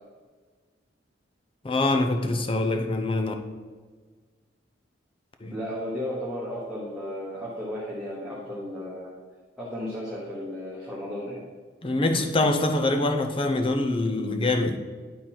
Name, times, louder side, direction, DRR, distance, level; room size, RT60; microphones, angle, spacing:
voice 1, 1.6-3.3 5.4-5.6 11.8-14.8, left 2 dB, 30° left, 6 dB, 0.6 m, -24 dB
voice 2, 5.5-9.1 9.6-11.4, equal, 5° right, -8 dB, 1.2 m, -34 dB
10.0 x 3.9 x 4.4 m, 1.5 s
head